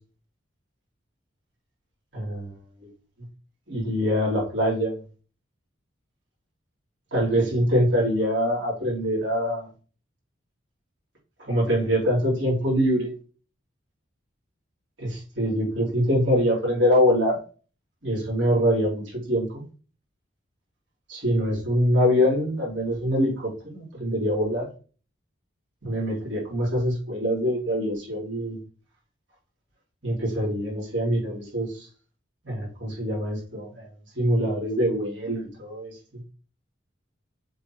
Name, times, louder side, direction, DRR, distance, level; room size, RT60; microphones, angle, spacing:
voice 1, 2.1-2.5 2.8-2.9 3.7-5.0 7.1-9.7 11.5-13.1 15.0-17.4 18.0-19.6 21.1-24.7 25.8-28.6 30.0-31.9 32.4-33.9 34.1-36.0, equal, 70° right, -4 dB, 3.6 m, -24 dB
7.5 x 4.1 x 3.2 m, 0.38 s
head